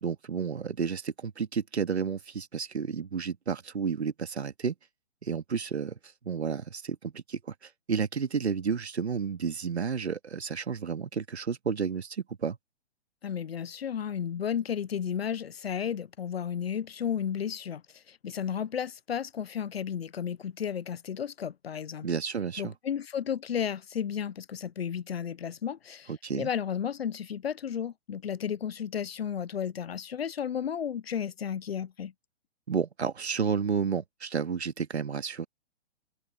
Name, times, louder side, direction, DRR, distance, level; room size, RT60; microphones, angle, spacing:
voice 1, 0.0-4.7 5.2-6.0 6.2-12.6 22.0-22.7 26.1-26.5 32.7-35.5, right 6 dB, 70° right, 2.1 m, -31 dB
voice 2, 13.2-22.1 22.6-32.1, left 8 dB, 60° left, 0.8 m, -33 dB
figure-of-eight pair, 120°, 34 cm